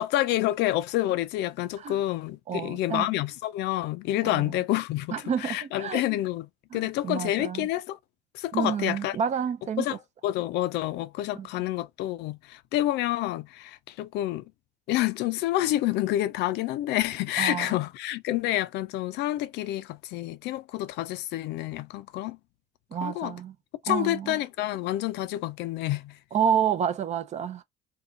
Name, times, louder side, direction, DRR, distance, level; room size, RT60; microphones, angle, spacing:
voice 1, 0.0-5.1 5.4-8.0 8.3-9.2 9.8-10.0 10.2-14.4 14.9-22.4 23.0-23.4 23.8-26.2, left 15 dB, 85° left, 0.4 m, -28 dB
voice 2, 2.5-3.1 4.2-4.6 5.1-6.0 6.7-7.7 8.5-9.9 11.4-11.5 17.4-17.7 22.9-23.5 23.9-24.4 26.3-27.6, right 8 dB, 45° right, 0.5 m, -29 dB
2.7 x 2.3 x 3.7 m
cardioid pair, 110°, 17 cm